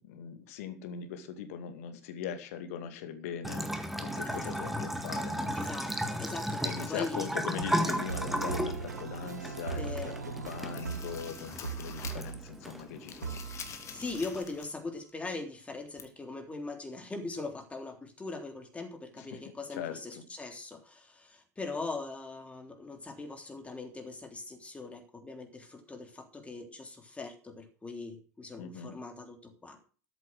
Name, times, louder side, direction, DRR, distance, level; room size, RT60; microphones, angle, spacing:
voice 1, 0.1-5.5 6.6-13.8 19.2-19.4 19.8-20.0 28.6-29.0, left 8 dB, 60° left, 8 dB, 2.4 m, -41 dB
Bathtub (filling or washing) / Trickle dribble, 3.4-14.4, equal, ahead, 1.7 m, -36 dB
voice 2, 4.2-4.5 5.6-7.3 9.7-10.2 13.9-29.8, left 3 dB, 15° left, 4 dB, 3.4 m, -41 dB
sound 1, 7.5-12.7 13.2-14.1 14.4-14.5, right 5 dB, 80° right, 0.7 m, -39 dB
sound 2, 8.9-10.0 10.3-12.4 12.7-14.8 15.1-15.2 16.0-16.1, left 7 dB, 35° left, 2.2 m, -47 dB
13.5 x 7.9 x 6.2 m, 0.38 s
figure-of-eight pair, 75°, 9 cm